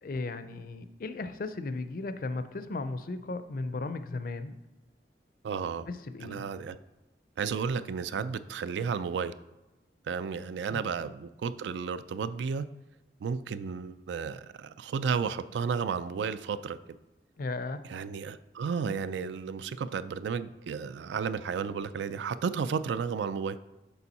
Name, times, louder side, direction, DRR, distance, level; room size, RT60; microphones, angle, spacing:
voice 1, 0.0-4.6 5.9-6.4 10.7-10.8 17.4-17.8, left 3 dB, 55° left, 11 dB, 0.4 m, -36 dB
voice 2, 5.4-5.9 6.2-6.8 7.4-9.3 10.1-12.7 13.2-16.8 17.9-23.6, right 6 dB, 85° right, 14 dB, 0.3 m, -33 dB
7.0 x 4.5 x 4.1 m, 1.0 s
head